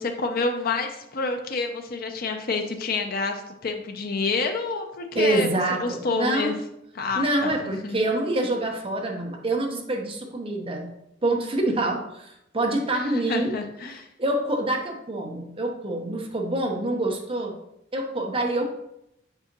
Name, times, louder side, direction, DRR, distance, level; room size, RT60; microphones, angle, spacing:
voice 1, 0.0-5.5 5.8-6.5 6.9-7.5 7.8-8.0 12.9-14.1, left 4 dB, 50° left, 4 dB, 0.6 m, -28 dB
voice 2, 5.1-6.5 7.1-10.9 11.2-13.6 14.2-17.5 17.9-18.7, right 2 dB, 30° right, 1 dB, 0.9 m, -26 dB
6.7 x 4.9 x 2.9 m, 0.81 s
head